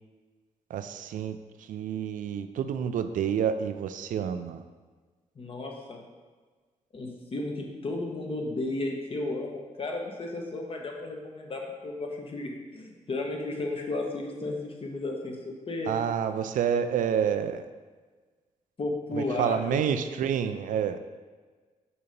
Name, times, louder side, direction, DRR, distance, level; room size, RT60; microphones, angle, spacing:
voice 1, 0.7-1.4 1.7-4.6 15.9-17.6 19.1-21.0, right 8 dB, 90° right, 10 dB, 0.4 m, -28 dB
voice 2, 5.4-6.0 6.9-15.9 18.8-19.8 20.2-20.3, left 2 dB, 45° left, 1 dB, 1.0 m, -34 dB
6.8 x 2.9 x 5.1 m, 1.4 s
cardioid pair, 100°, 13 cm